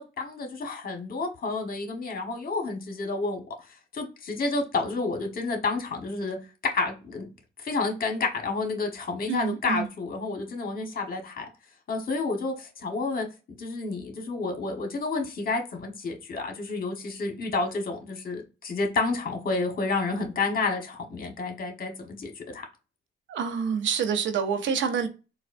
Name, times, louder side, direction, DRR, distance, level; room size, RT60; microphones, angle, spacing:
voice 1, 0.0-6.4 6.7-7.3 7.6-11.5 11.9-13.3 13.6-22.6, left 3 dB, 45° left, 1.2 m, -30 dB
voice 2, 9.3-9.9 23.3-25.1, right 6 dB, 70° right, 0.7 m, -27 dB
4.1 x 2.3 x 2.5 m
cardioid pair, 90°, 20 cm